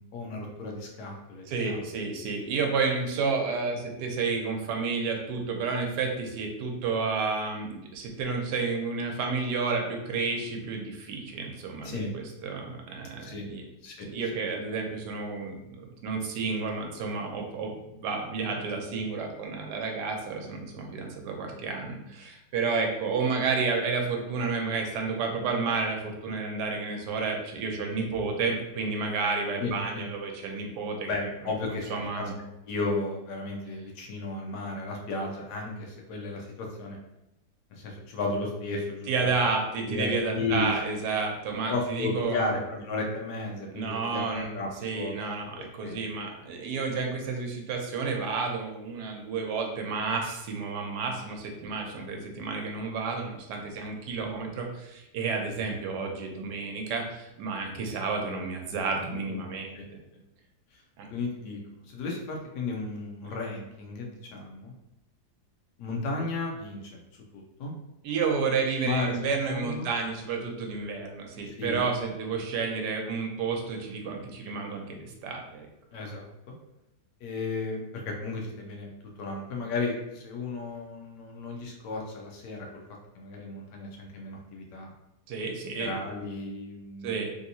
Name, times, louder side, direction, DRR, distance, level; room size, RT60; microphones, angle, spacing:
voice 1, 0.0-1.9 11.8-12.1 13.2-13.5 13.8-14.1 29.6-30.0 31.1-32.3 32.7-37.0 37.7-39.1 39.8-41.0 41.7-45.2 45.8-46.1 55.5-55.7 59.3-59.4 59.7-59.9 60.7-60.8 61.1-64.7 65.8-67.0 67.3-67.7 68.8-69.2 69.4-69.9 71.5-71.8 75.9-76.6 77.2-78.9 79.2-82.7 83.1-84.9 85.8-87.2, left 3 dB, 85° left, 0 dB, 1.2 m, -34 dB
voice 2, 1.5-13.6 14.0-31.3 31.9-32.3 39.1-42.5 43.7-60.0 61.0-61.1 68.0-75.7 85.3-86.0 87.0-87.3, right 4 dB, 85° right, 2 dB, 1.2 m, -31 dB
3.3 x 2.7 x 2.7 m, 0.91 s
omnidirectional pair, 1.8 m